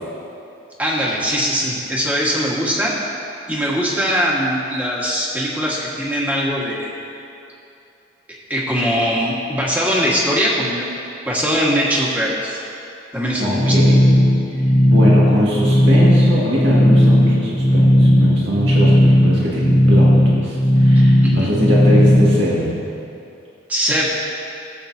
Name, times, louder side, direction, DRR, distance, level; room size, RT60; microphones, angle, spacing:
voice 1, 0.8-2.9 3.5-6.9 8.5-10.8 11.3-12.6 13.1-13.7 21.2-21.5 23.7-24.1, equal, 10° right, -5 dB, 1.7 m, -21 dB
voice 2, 13.4-14.0 14.8-22.8, equal, 70° right, -6 dB, 2.0 m, -21 dB
sound 1, 13.5-22.4, equal, 10° left, 1.2 m, -14 dB
18.0 x 8.0 x 2.8 m, 2.7 s
head